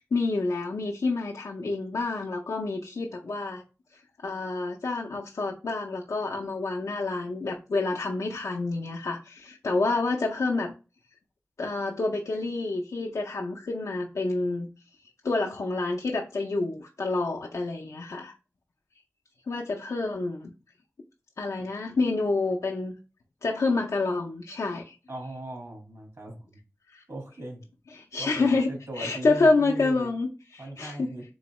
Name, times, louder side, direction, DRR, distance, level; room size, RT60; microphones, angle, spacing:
voice 1, 0.0-3.6 4.2-10.7 11.6-14.7 15.2-18.3 19.5-20.5 21.4-22.9 23.4-24.9 26.9-27.0 27.9-28.7 29.0-31.1, left 3 dB, 85° left, -1 dB, 0.5 m, -28 dB
voice 2, 25.1-26.5 27.1-27.6 28.2-30.1 30.6-31.2, right 1 dB, 65° right, 0 dB, 1.6 m, -38 dB
3.8 x 3.5 x 2.9 m, 0.32 s
wide cardioid pair, 55°, 5 cm